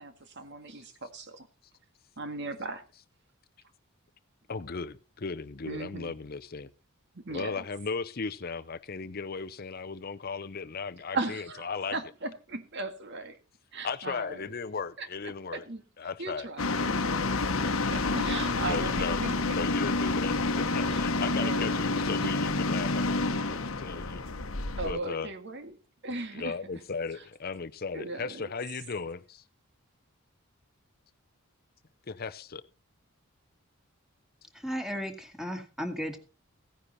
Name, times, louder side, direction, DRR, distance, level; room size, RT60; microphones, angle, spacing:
voice 1, 0.0-1.5 2.2-2.8 5.7-6.1 7.2-7.6 11.1-13.4 13.7-14.5 15.0-15.1 15.5-15.8 16.2-19.6 20.9-22.0 23.7-23.8 24.8-25.8 26.0-26.5 27.9-28.5, right 2 dB, 55° right, 1.8 m, -38 dB
voice 2, 4.5-6.7 7.3-12.0 13.8-15.6 16.0-16.5 18.6-24.2 24.8-25.3 26.3-29.4 32.1-32.6, left 4 dB, 45° left, 0.7 m, -36 dB
sound 1, 16.6-24.9, left 3 dB, 70° left, 1.1 m, -29 dB
voice 3, 34.5-36.2, equal, ahead, 2.1 m, -35 dB
16.0 x 10.0 x 4.1 m
head